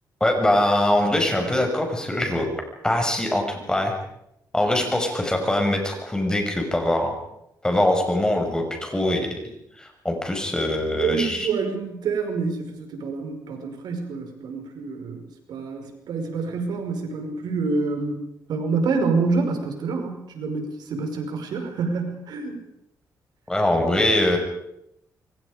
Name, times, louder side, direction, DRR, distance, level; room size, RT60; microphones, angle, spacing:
voice 1, 0.2-2.5 2.8-4.0 4.5-7.2 7.6-11.5 23.5-24.4, left 1 dB, 10° left, 3 dB, 6.0 m, -23 dB
voice 2, 11.0-18.2 18.5-22.6, right 4 dB, 80° right, 4 dB, 5.3 m, -27 dB
27.5 x 24.0 x 5.1 m, 0.80 s
cardioid pair, 135°, 7 cm